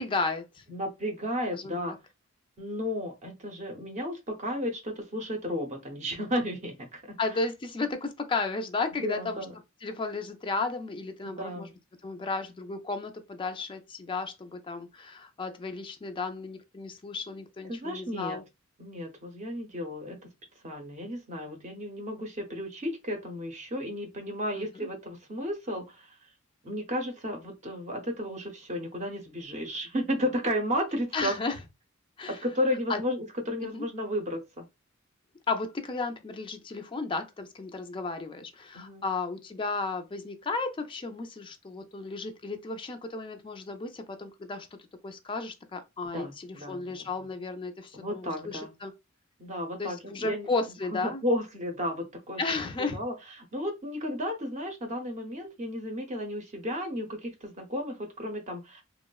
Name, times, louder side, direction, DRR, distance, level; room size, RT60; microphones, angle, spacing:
voice 1, 0.0-0.6 1.5-2.0 7.2-9.5 9.8-11.7 12.0-18.4 24.5-24.9 31.1-31.6 32.2-32.4 32.9-33.0 33.6-33.8 35.5-44.7 45.0-48.9 49.8-51.2 52.4-53.0, left 3 dB, 25° left, 0.3 m, -34 dB
voice 2, 0.7-2.0 2.6-7.2 9.0-9.5 11.2-11.7 17.7-18.4 18.8-20.3 20.6-26.2 26.6-31.4 32.3-34.6 38.7-39.0 46.1-47.1 47.9-48.7 49.4-50.5 50.9-52.4 52.9-58.8, equal, 35° right, 0.6 m, -33 dB
2.9 x 2.0 x 2.2 m
head